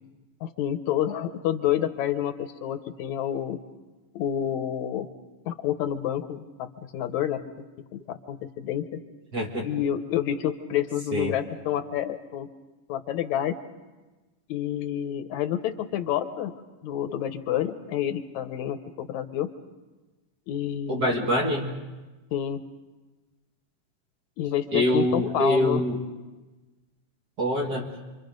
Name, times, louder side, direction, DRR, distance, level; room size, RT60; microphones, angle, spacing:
voice 1, 0.4-3.6 4.1-5.1 5.5-7.4 7.9-9.0 9.6-12.5 12.9-13.6 14.5-16.5 16.8-19.5 20.5-21.4 22.3-22.6 24.4-25.8, left 10 dB, 75° left, 9 dB, 2.2 m, -29 dB
voice 2, 9.3-9.7 11.1-11.4 20.9-21.7 24.7-26.0 27.4-27.9, equal, 40° right, 0 dB, 1.8 m, -24 dB
27.5 x 24.5 x 5.2 m, 1.2 s
omnidirectional pair, 3.5 m